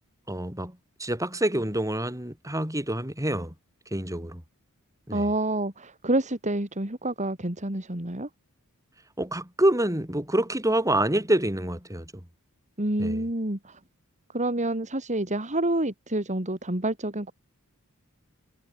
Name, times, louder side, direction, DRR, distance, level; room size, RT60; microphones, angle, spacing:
voice 1, 0.3-3.5 3.9-4.4 5.1-5.3 9.2-12.1 13.0-13.2, right 1 dB, 15° right, 7.5 m, -27 dB
voice 2, 5.1-8.3 12.8-13.8 14.3-17.3, right 1 dB, 35° right, 3.4 m, -28 dB
head